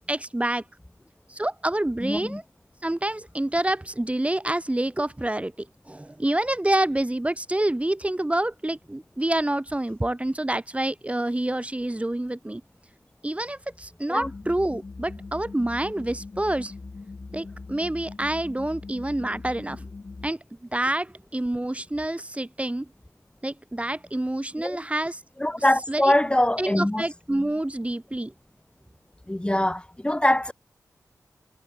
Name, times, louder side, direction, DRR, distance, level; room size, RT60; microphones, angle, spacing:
voice 1, 0.1-0.6 1.3-2.4 2.8-12.6 13.2-16.7 17.3-19.9 20.2-20.4 20.7-22.9 23.4-25.2 25.9-26.1 26.6-28.3, right 1 dB, 20° right, 2.0 m, -27 dB
voice 2, 2.0-2.4 14.1-14.3 24.6-24.8 25.4-27.0 29.3-30.5, left 1 dB, 15° left, 1.8 m, -23 dB
sound 1, 14.2-20.3, left 3 dB, 45° left, 1.6 m, -41 dB
cardioid pair, 40°, 7 cm